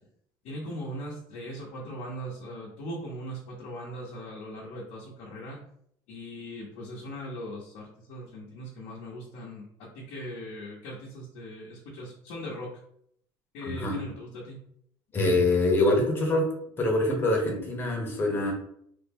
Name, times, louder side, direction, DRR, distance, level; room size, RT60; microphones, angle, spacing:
voice 1, 0.4-5.6 6.1-12.8 13.5-14.6, equal, 70° left, -5 dB, 0.8 m, -39 dB
voice 2, 13.7-14.0 15.1-16.5 16.8-18.5, left 2 dB, 20° left, 0 dB, 0.8 m, -24 dB
3.4 x 2.1 x 3.4 m, 0.68 s
cardioid pair, 155°, 11 cm